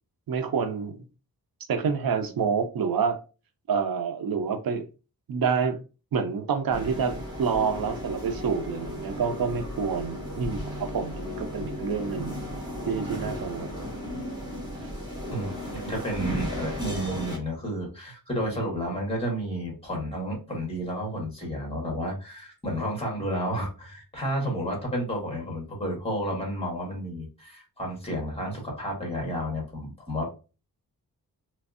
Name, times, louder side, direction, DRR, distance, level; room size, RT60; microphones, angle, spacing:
voice 1, 0.3-1.0 1.7-3.2 3.7-4.8 5.3-5.8 6.1-12.4 12.9-13.7 14.1-14.2 18.3-18.5, right 6 dB, 80° right, 0.6 m, -28 dB
sound 1, 6.7-17.4, left 1 dB, 10° right, 1.4 m, -35 dB
voice 2, 15.3-30.3, equal, 15° left, 1.6 m, -31 dB
3.4 x 3.1 x 2.5 m
wide cardioid pair, 160°, 35 cm